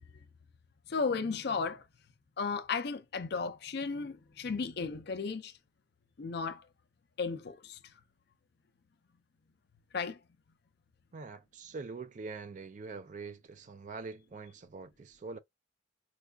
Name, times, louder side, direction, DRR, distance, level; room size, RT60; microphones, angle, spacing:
voice 1, 0.9-1.8 2.4-5.5 6.2-6.6 7.2-7.8 9.9-10.2, left 4 dB, 55° left, 0.5 m, -34 dB
voice 2, 11.1-15.4, right 4 dB, 40° right, 0.4 m, -44 dB
4.6 x 2.3 x 2.3 m
head